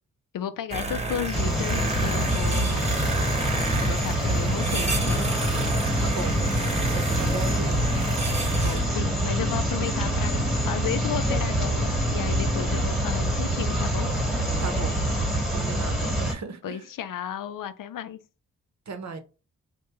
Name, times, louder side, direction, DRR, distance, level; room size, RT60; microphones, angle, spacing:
voice 1, 0.3-2.9 3.8-5.3 8.5-14.1 16.6-18.2, left 9 dB, 75° left, 0.5 m, -34 dB
sound 1, 0.7-15.7, right 3 dB, 20° right, 0.7 m, -32 dB
sound 2, 1.3-16.3, equal, ahead, 1.1 m, -25 dB
voice 2, 6.0-6.4 6.9-8.0 14.6-15.0 15.5-16.9 18.9-19.2, right 5 dB, 55° right, 0.8 m, -37 dB
3.4 x 2.2 x 3.1 m
cardioid pair, 60°, 33 cm